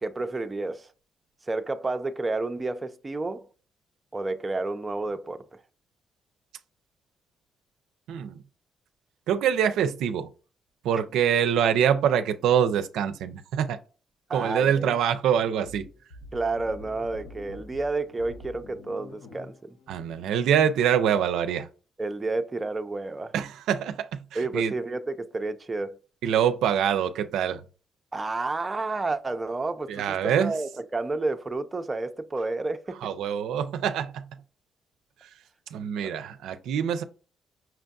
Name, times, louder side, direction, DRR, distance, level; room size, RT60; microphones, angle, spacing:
voice 1, 0.0-0.9 1.4-3.5 4.1-5.6 14.3-14.9 16.3-19.8 22.0-23.3 24.3-26.0 28.1-33.1 36.0-36.2, right 3 dB, 25° right, 0.4 m, -30 dB
voice 2, 8.1-8.4 9.3-10.3 10.8-13.8 14.3-15.8 19.9-21.7 23.3-24.7 26.2-27.6 29.9-30.5 33.0-34.3 35.7-37.0, right 8 dB, 85° right, 0.4 m, -25 dB
sound 1, 15.6-21.3, left 2 dB, 80° left, 0.7 m, -47 dB
5.7 x 2.5 x 2.3 m
cardioid pair, 90°, 0 cm